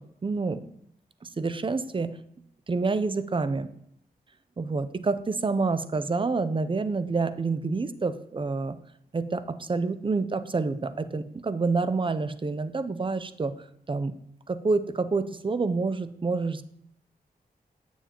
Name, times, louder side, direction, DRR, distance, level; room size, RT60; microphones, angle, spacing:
voice 1, 0.2-0.6 1.2-2.1 2.7-3.7 4.6-8.8 9.1-13.5 13.9-14.1 14.5-16.6, right 4 dB, 30° right, 12 dB, 0.5 m, -28 dB
8.7 x 7.1 x 2.9 m, 0.73 s
wide cardioid pair, 75°, 16 cm